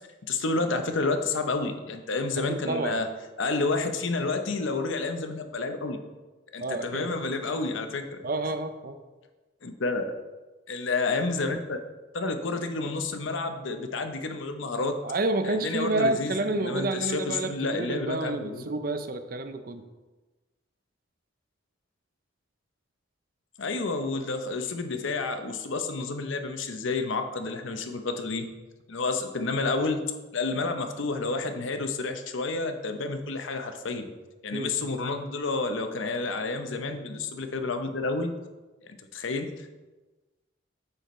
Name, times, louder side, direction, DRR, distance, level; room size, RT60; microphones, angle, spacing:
voice 1, 0.3-3.1 3.4-6.0 6.5-8.2 9.6-10.1 10.7-11.8 12.1-15.0 15.4-18.6 23.6-28.5 28.9-34.1 34.4-38.4 38.8-39.7, left 3 dB, 70° left, 7 dB, 0.7 m, -30 dB
voice 2, 2.5-3.0 6.6-7.1 8.2-9.0 15.0-19.8 34.5-34.7, right 2 dB, 45° right, 9 dB, 0.5 m, -29 dB
8.7 x 6.7 x 3.1 m, 1.2 s
head